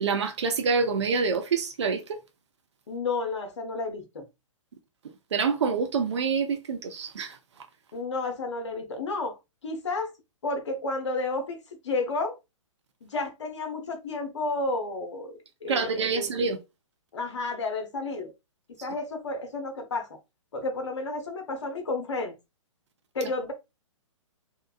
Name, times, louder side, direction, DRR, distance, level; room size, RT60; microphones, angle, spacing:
voice 1, 0.0-2.2 5.3-7.4 15.7-16.6, right 5 dB, 60° right, 0.7 m, -26 dB
voice 2, 2.9-4.3 7.9-10.1 10.4-12.4 13.0-16.5 17.1-18.3 18.8-20.2 20.5-22.3 23.1-23.5, left 3 dB, 60° left, 0.9 m, -32 dB
2.8 x 2.2 x 2.4 m
figure-of-eight pair, 120°, 17 cm